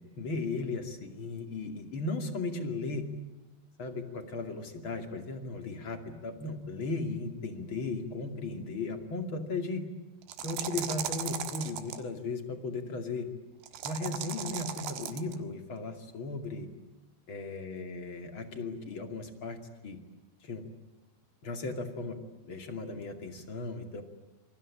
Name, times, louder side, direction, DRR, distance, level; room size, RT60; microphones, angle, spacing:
voice 1, 0.2-3.1 3.8-9.9 10.4-13.3 13.8-16.7 17.3-19.6 19.8-20.0 20.4-20.6 21.4-22.2 22.4-24.0, left 3 dB, 35° left, 6 dB, 2.6 m, -36 dB
sound 1, 10.2-12.0 13.6-15.4, right 10 dB, 75° right, 3.7 m, -37 dB
27.5 x 24.0 x 8.7 m, 1.1 s
omnidirectional pair, 4.8 m